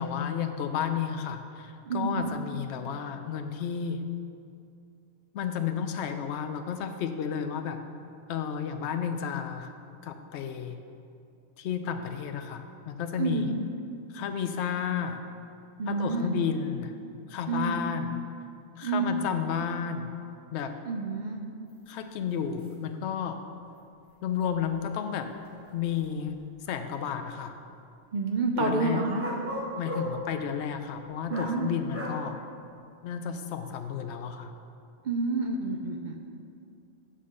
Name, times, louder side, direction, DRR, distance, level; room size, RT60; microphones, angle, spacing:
voice 1, 0.0-4.0 5.3-7.8 8.3-9.7 10.0-10.8 11.6-13.5 14.1-15.2 15.9-16.9 17.3-18.1 18.8-20.1 20.5-20.8 21.9-23.4 24.2-25.3 25.7-26.4 26.7-27.6 28.6-29.1 29.8-32.4 33.0-34.5, left 7 dB, 70° left, 8 dB, 0.8 m, -32 dB
voice 2, 1.8-2.4 13.2-13.6 15.8-16.4 17.5-17.9 18.8-19.2 20.8-21.5 28.1-29.3 31.3-31.8 35.0-36.2, right 3 dB, 60° right, 2 dB, 0.5 m, -29 dB
sound 1, 21.7-21.8 22.3-22.4 22.6-22.7 23.7-23.8 24.6-24.7 25.4-26.4 29.2-30.1 31.3-31.6 31.9-32.2, equal, 10° right, 0.8 m, -36 dB
8.5 x 3.7 x 6.3 m, 2.5 s
omnidirectional pair, 1.3 m